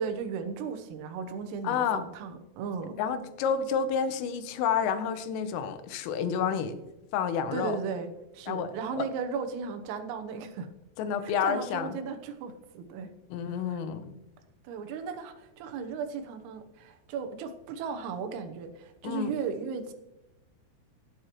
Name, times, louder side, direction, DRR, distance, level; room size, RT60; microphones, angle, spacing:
voice 1, 0.0-3.0 7.5-10.7 11.2-13.1 13.7-13.8 14.7-19.9, right 5 dB, 85° right, 6 dB, 3.7 m, -36 dB
voice 2, 1.6-2.0 3.0-6.8 7.1-7.8 8.5-8.7 9.0-9.1 11.0-12.0 13.3-14.1 19.0-19.3, left 7 dB, 80° left, 10 dB, 3.4 m, -29 dB
17.0 x 9.4 x 3.0 m, 0.93 s
omnidirectional pair, 5.9 m